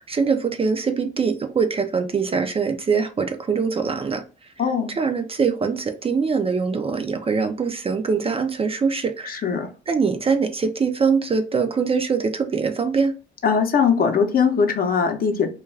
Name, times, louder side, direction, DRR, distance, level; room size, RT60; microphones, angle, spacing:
voice 1, 0.0-4.2 4.9-9.4 9.9-13.1, right 5 dB, 30° right, 0.4 m, -23 dB
voice 2, 4.6-4.9 9.3-9.7 13.4-15.5, left 6 dB, 45° left, 0.7 m, -20 dB
2.3 x 2.3 x 3.2 m
cardioid pair, 90°, 20 cm